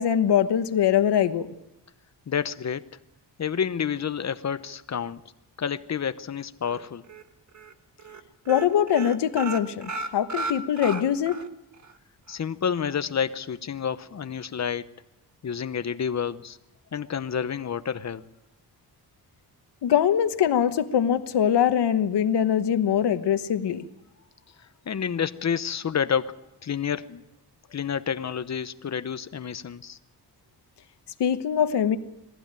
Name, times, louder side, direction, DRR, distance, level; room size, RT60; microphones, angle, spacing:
voice 1, 0.0-1.5 8.5-11.3 19.8-23.8 31.2-32.0, left 9 dB, 90° left, 10 dB, 1.2 m, -22 dB
voice 2, 2.3-2.8 3.4-5.2 5.6-7.0 12.3-14.9 15.4-16.6 16.9-18.2 24.8-27.2 27.7-30.0, left 7 dB, 45° left, 12 dB, 0.9 m, -29 dB
sound 1, 6.6-7.2 7.5-7.7 8.0-8.2 8.5-11.5 11.8-11.9 12.3-12.4, right 3 dB, 45° right, 1.5 m, -34 dB
21.5 x 15.5 x 9.0 m, 0.92 s
wide cardioid pair, 130°, 40 cm